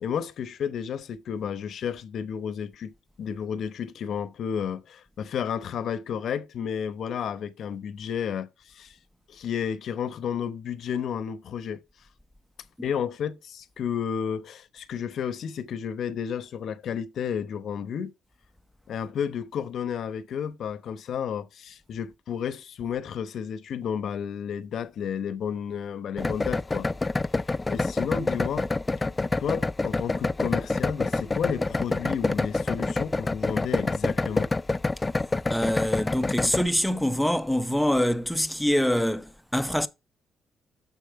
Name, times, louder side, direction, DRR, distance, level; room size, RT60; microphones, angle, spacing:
voice 1, 0.0-9.0 9.3-11.8 12.8-18.1 18.9-26.9 27.7-28.7 29.4-34.5, left 8 dB, 65° left, 0.9 m, -32 dB
sound 1, 26.2-36.7, left 3 dB, 20° left, 0.3 m, -27 dB
voice 2, 35.5-39.9, equal, ahead, 0.7 m, -25 dB
6.8 x 6.3 x 4.6 m
cardioid pair, 90°, 0 cm